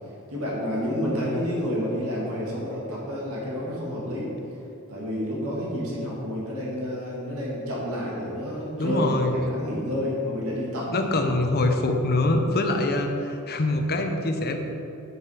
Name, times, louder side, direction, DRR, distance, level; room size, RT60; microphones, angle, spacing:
voice 1, 0.3-4.3 4.9-10.9, equal, 70° right, -5 dB, 2.1 m, -29 dB
voice 2, 8.8-9.3 10.9-14.6, left 2 dB, 45° left, 4 dB, 0.8 m, -24 dB
8.0 x 7.1 x 5.0 m, 3.0 s
head